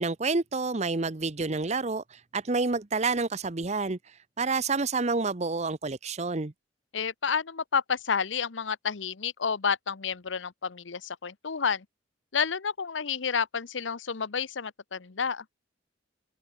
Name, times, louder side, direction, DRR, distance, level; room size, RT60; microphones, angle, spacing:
voice 1, 0.0-4.0 4.4-6.5, right 3 dB, 35° right, 0.8 m, -28 dB
voice 2, 6.9-11.8 12.3-15.4, left 6 dB, 90° left, 0.9 m, -30 dB
open air
head